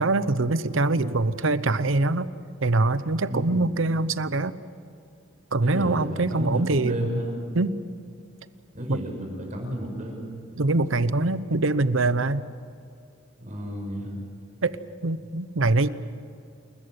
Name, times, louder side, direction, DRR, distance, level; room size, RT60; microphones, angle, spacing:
voice 1, 0.0-2.3 2.6-4.5 5.5-7.0 7.5-7.7 8.9-9.0 10.6-12.4 14.6-14.7 15.0-15.9, right 2 dB, 80° right, 14 dB, 0.9 m, -23 dB
voice 2, 3.3-3.8 5.6-7.3 8.7-10.3 13.4-14.2, equal, 40° right, 0 dB, 6.2 m, -32 dB
28.0 x 14.5 x 9.7 m, 2.3 s
head